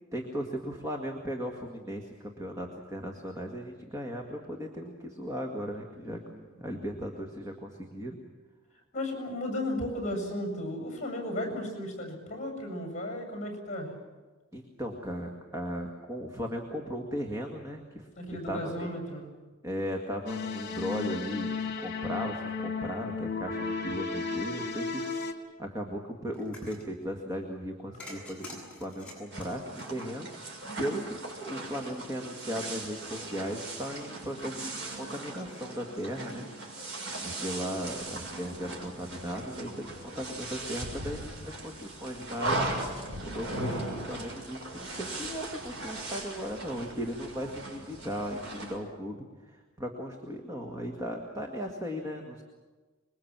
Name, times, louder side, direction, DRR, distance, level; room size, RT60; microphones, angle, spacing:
voice 1, 0.1-8.2 14.5-18.1 18.5-18.9 19.6-25.3 25.6-36.8 37.2-52.4, equal, 15° right, 2 dB, 2.0 m, -37 dB
voice 2, 8.9-13.9 18.2-19.3, left 1 dB, 35° left, 3 dB, 7.4 m, -34 dB
sound 1, 20.3-25.3, left 4 dB, 50° left, 2.5 m, -34 dB
sound 2, 26.3-26.9 28.0-30.5, left 1 dB, 5° left, 7.7 m, -46 dB
sound 3, 29.3-48.8, right 2 dB, 60° right, 6.6 m, -38 dB
26.0 x 22.5 x 7.5 m, 1.3 s
head